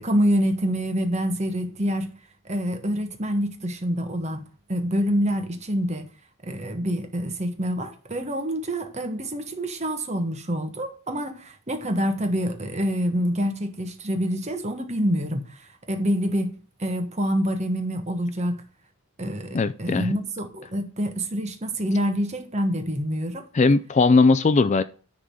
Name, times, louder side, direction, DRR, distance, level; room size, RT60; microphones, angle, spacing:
voice 1, 0.0-2.1 2.4-4.4 4.7-6.1 6.4-18.6 19.2-23.5, equal, 30° right, 1.3 m, -26 dB
voice 2, 19.5-20.1 23.5-24.8, left 3 dB, 30° left, 0.3 m, -19 dB
10.0 x 3.7 x 6.3 m
head